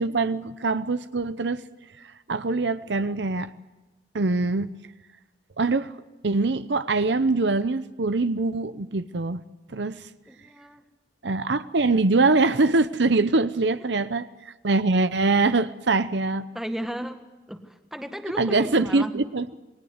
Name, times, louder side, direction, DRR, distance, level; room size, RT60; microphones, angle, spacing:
voice 1, 0.0-1.6 2.3-3.5 4.1-4.7 5.6-5.9 6.2-9.4 9.7-10.1 11.2-16.5 18.4-19.5, right 3 dB, 75° right, 13 dB, 0.8 m, -23 dB
voice 2, 10.3-10.8 16.5-17.2 17.5-19.2, equal, ahead, 6 dB, 1.6 m, -34 dB
27.5 x 19.5 x 8.1 m, 1.1 s
head